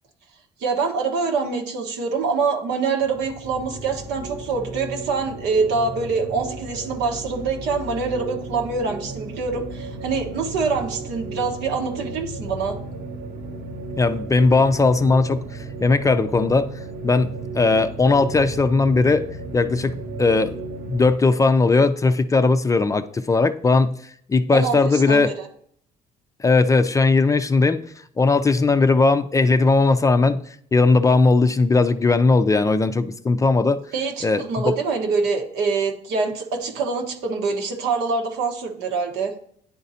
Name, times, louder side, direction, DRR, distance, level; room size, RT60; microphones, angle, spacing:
voice 1, 0.6-12.8 24.5-25.5 33.9-39.3, right 4 dB, 85° right, 3 dB, 1.3 m, -25 dB
Ambience Creepy Wind A, 3.0-21.1, right 2 dB, 60° right, 0.9 m, -34 dB
voice 2, 14.0-15.4 15.8-16.7 17.0-19.3 19.5-20.5 20.9-24.0 24.3-25.3 26.4-27.8 28.2-30.4 30.7-33.8 34.2-34.7, left 3 dB, 20° left, 10 dB, 0.4 m, -18 dB
10.0 x 3.9 x 2.8 m, 0.64 s
cardioid pair, 110°, 17 cm